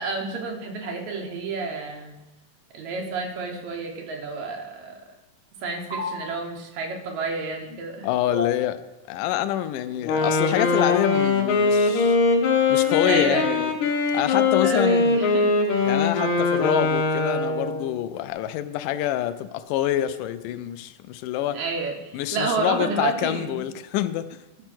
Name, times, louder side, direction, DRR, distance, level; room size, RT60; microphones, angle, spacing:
voice 1, 0.0-2.2 2.7-5.0 5.6-8.1 13.0-13.6 14.4-15.6 21.5-23.6, right 4 dB, 65° right, 1 dB, 2.4 m, -30 dB
sound 1, 5.9-6.1 8.3-8.5 10.7-10.9 13.1-13.5, left 2 dB, 15° right, 3.2 m, -29 dB
voice 2, 8.0-8.8 9.1-12.2 12.7-13.7 14.1-15.2 15.9-21.6 22.1-24.4, left 12 dB, 90° left, 11 dB, 2.2 m, -26 dB
Wind instrument woodwind instrument, 10.0-18.0, left 4 dB, 70° left, 2.5 m, -22 dB
12.5 x 4.6 x 6.0 m, 1.0 s
omnidirectional pair, 3.6 m